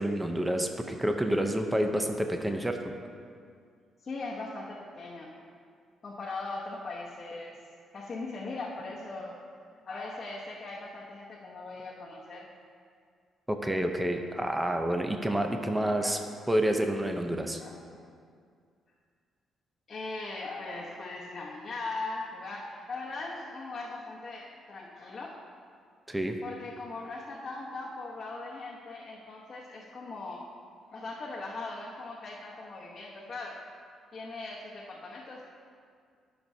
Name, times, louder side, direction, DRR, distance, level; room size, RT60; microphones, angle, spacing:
voice 1, 0.0-2.8 13.5-16.2 16.5-17.6 26.1-26.4, right 1 dB, 10° right, 4 dB, 0.7 m, -28 dB
voice 2, 4.0-5.3 6.0-7.5 7.9-9.4 9.8-12.5 15.9-16.2 17.6-18.0 19.9-25.4 26.4-30.4 30.9-33.6 34.1-35.5, left 3 dB, 35° left, -6 dB, 1.1 m, -39 dB
13.5 x 6.0 x 2.8 m, 2.2 s
cardioid pair, 90°, 0 cm